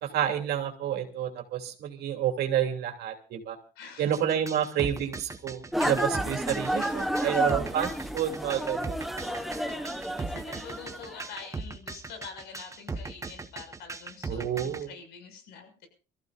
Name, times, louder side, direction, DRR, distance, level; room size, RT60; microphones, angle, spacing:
voice 1, 0.0-3.6 4.0-9.0 14.3-14.9, right 10 dB, 70° right, 3 dB, 3.0 m, -29 dB
voice 2, 3.7-4.1 5.7-5.9 6.4-7.5 9.2-15.9, left 5 dB, 85° left, 6 dB, 6.4 m, -46 dB
sound 1, 4.1-14.8, right 4 dB, 20° right, 1.4 m, -38 dB
sound 2, 5.7-11.3, equal, ahead, 1.0 m, -31 dB
26.0 x 14.5 x 2.6 m, 0.34 s
cardioid pair, 110°, 17 cm